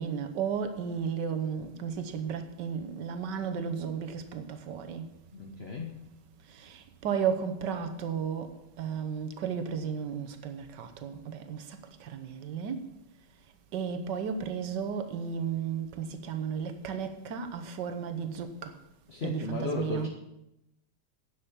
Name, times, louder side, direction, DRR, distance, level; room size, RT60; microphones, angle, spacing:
voice 1, 0.0-5.0 6.6-8.5 8.8-12.9 13.7-18.7 19.2-20.1, right 7 dB, 60° right, 1.4 m, -34 dB
voice 2, 5.3-5.9 19.1-20.1, left 3 dB, 40° left, 0.9 m, -35 dB
10.0 x 7.3 x 7.0 m
omnidirectional pair, 2.4 m